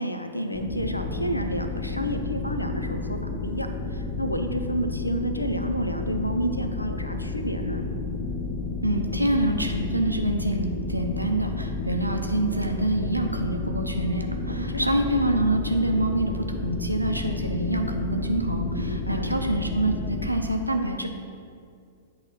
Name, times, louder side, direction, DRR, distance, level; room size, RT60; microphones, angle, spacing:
voice 1, 0.0-7.9 14.5-14.9 18.8-19.4, equal, 85° left, 6 dB, 0.5 m, -30 dB
sound 1, 0.5-20.3, left 3 dB, 35° left, 1.2 m, -31 dB
voice 2, 8.8-21.1, right 1 dB, 90° right, 3 dB, 0.6 m, -26 dB
8.2 x 3.2 x 5.7 m, 2.3 s
figure-of-eight pair, 105°, 0 cm